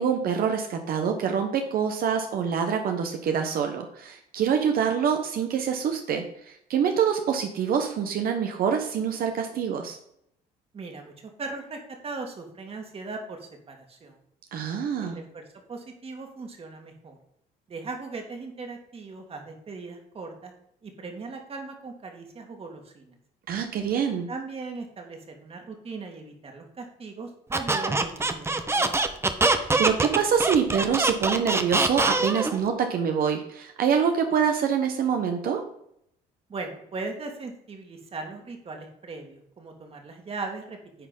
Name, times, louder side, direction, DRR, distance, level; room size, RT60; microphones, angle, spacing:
voice 1, 0.0-6.2 6.7-10.0 14.5-15.2 23.5-24.3 29.5-35.6, right 7 dB, 60° right, 4 dB, 1.2 m, -25 dB
voice 2, 10.7-14.2 15.0-17.2 17.7-20.5 20.8-23.2 24.3-28.9 36.5-41.1, right 3 dB, 35° right, 3 dB, 2.3 m, -39 dB
Squeak, 27.5-32.6, right 3 dB, 15° right, 0.9 m, -24 dB
9.9 x 4.4 x 5.4 m, 0.72 s
cardioid pair, 110°, 17 cm